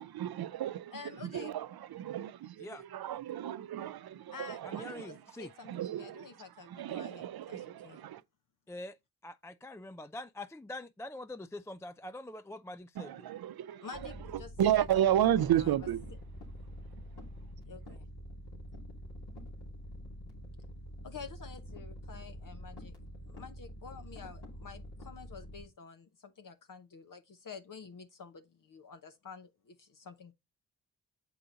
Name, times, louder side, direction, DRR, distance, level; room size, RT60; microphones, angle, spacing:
voice 1, 0.0-5.2 5.6-8.2 12.9-16.1, right 11 dB, 65° right, 0.6 m, -33 dB
voice 2, 0.9-1.6 4.3-8.0 13.8-14.5 15.4-15.8 17.7-18.1 21.0-22.9 23.3-30.3, left 5 dB, 50° left, 0.9 m, -49 dB
voice 3, 4.6-5.5 8.7-9.0 9.2-13.3, left 1 dB, 5° left, 0.3 m, -44 dB
sound 1, 13.9-25.7, equal, 70° left, 2.8 m, -46 dB
6.6 x 4.8 x 3.8 m
supercardioid pair, 40°, 40 cm